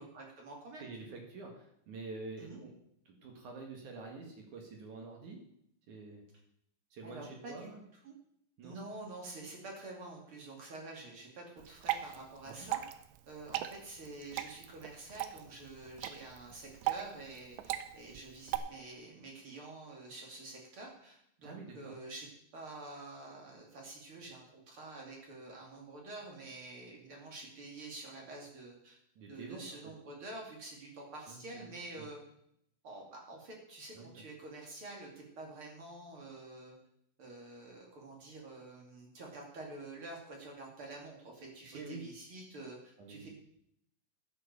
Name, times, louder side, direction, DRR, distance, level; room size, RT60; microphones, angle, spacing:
voice 1, 0.0-1.2 2.4-2.6 7.0-7.7 8.0-8.1 8.6-12.8 13.3-22.3 22.5-29.0 29.3-32.2 32.8-36.8 37.2-43.3, right 2 dB, 40° right, -1 dB, 2.2 m, -48 dB
voice 2, 0.8-2.7 3.1-5.4 5.9-6.2 6.9-7.8 8.6-8.8 12.5-12.7 21.4-21.9 29.2-29.6 31.3-32.1 33.9-34.2 41.7-42.0 43.0-43.3, right 3 dB, 55° right, 1 dB, 2.4 m, -47 dB
Water / Drip, 11.6-18.6, right 14 dB, 80° right, 2.6 m, -39 dB
11.5 x 8.3 x 6.7 m, 0.74 s
omnidirectional pair, 5.7 m